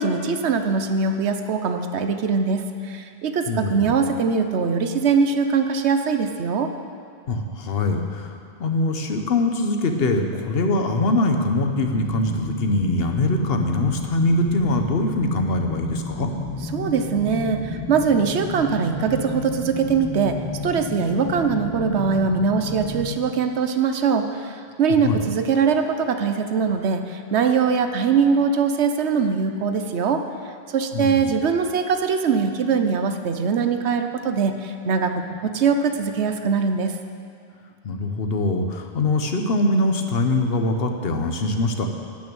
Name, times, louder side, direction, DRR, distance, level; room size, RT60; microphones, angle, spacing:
voice 1, 0.0-6.7 16.7-20.4 20.6-30.2 30.7-35.1 35.4-37.0, right 5 dB, 80° right, 7 dB, 1.1 m, -22 dB
voice 2, 3.5-4.0 7.3-16.3 25.0-25.2 30.9-31.3 37.8-41.9, left 2 dB, 60° left, 5 dB, 1.2 m, -23 dB
sound 1, 11.8-23.2, left 2 dB, 15° left, 1.2 m, -32 dB
12.5 x 6.2 x 8.8 m, 2.4 s
omnidirectional pair, 1.1 m